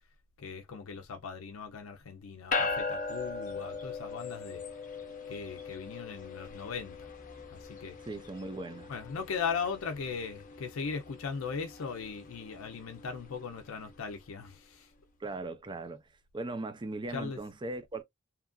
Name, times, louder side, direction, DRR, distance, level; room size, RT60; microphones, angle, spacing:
voice 1, 0.4-4.6 5.3-7.1 7.5-8.0 8.9-14.9 17.1-17.4, left 5 dB, 90° left, 0.5 m, -38 dB
sound 1, 2.5-14.1, left 4 dB, 40° left, 0.7 m, -40 dB
voice 2, 8.0-8.9 15.2-16.0 16.3-18.0, right 2 dB, 25° right, 0.4 m, -38 dB
2.9 x 2.4 x 2.2 m
head